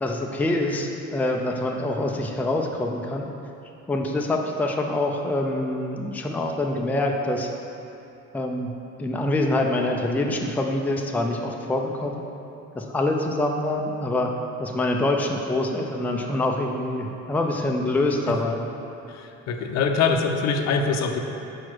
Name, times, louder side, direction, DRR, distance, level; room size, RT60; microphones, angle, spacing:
voice 1, 0.0-3.3 3.9-7.5 8.3-8.7 9.0-12.2 12.7-14.3 14.6-18.6, left 2 dB, 5° left, 1 dB, 0.4 m, -25 dB
voice 2, 19.1-21.2, left 5 dB, 60° left, 4 dB, 0.6 m, -24 dB
4.8 x 4.6 x 6.1 m, 2.8 s
cardioid pair, 105°, 30 cm